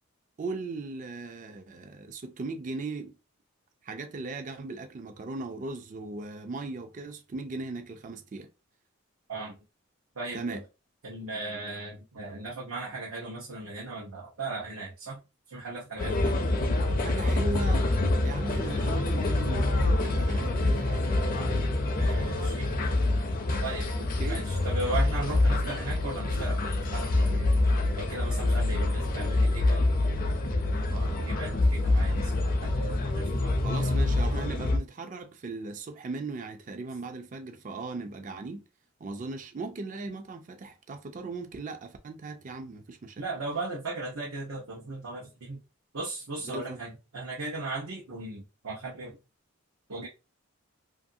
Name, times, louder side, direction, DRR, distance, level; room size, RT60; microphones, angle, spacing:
voice 1, 0.4-3.2 3.8-8.5 10.3-10.6 17.0-17.9 18.2-21.3 24.2-24.5 33.6-38.6 39.0-43.2 46.5-46.8, right 3 dB, 35° right, 0.4 m, -38 dB
voice 2, 10.1-10.6 11.0-15.2 15.5-16.4 22.0-22.8 23.6-23.9 24.3-27.5 27.9-30.1 30.9-32.7 33.1-33.6 43.2-45.6 45.9-49.2 49.9-50.1, right 2 dB, 80° right, 0.8 m, -37 dB
sound 1, 16.0-34.8, left 2 dB, 40° left, 0.4 m, -26 dB
2.6 x 2.5 x 2.6 m
head